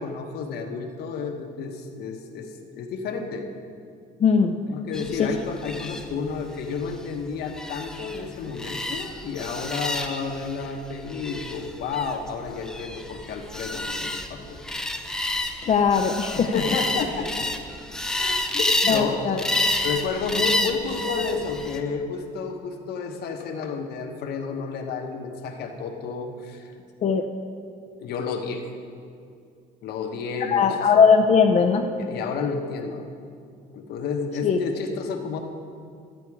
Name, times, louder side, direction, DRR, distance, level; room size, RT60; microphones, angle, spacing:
voice 1, 0.0-3.5 4.7-14.6 16.3-17.5 18.1-19.2 19.7-26.7 28.0-28.7 29.8-30.6 32.0-33.0 33.7-35.4, left 5 dB, 75° left, 3 dB, 1.2 m, -31 dB
voice 2, 4.2-4.6 5.2-5.3 15.7-16.5 18.9-19.4 27.0-27.3 30.4-31.9 34.4-34.6, left 6 dB, 40° left, 4 dB, 0.6 m, -19 dB
sound 1, 4.9-21.8, left 1 dB, 5° left, 0.6 m, -30 dB
13.0 x 8.2 x 4.8 m, 2.4 s
cardioid pair, 110°, 17 cm